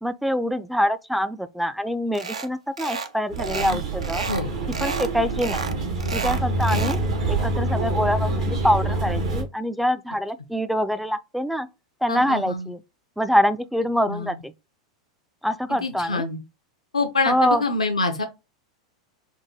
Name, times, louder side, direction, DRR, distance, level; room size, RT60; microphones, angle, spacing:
voice 1, 0.0-4.2 4.8-5.6 6.1-7.0 7.3-11.7 12.0-12.8 13.2-14.5 15.4-16.3 17.3-17.6, equal, ahead, 0.3 m, -25 dB
sound 1, 2.1-2.5 2.8-3.1 3.4-4.4 4.7-5.1 5.4-7.0, right 4 dB, 85° right, 0.5 m, -31 dB
sound 2, 3.3-9.4, right 2 dB, 70° right, 1.1 m, -26 dB
voice 2, 12.1-12.7 14.1-14.4 15.7-16.4 16.9-18.2, left 3 dB, 90° left, 0.4 m, -26 dB
4.5 x 2.2 x 2.7 m
hypercardioid pair, 95°, 3 cm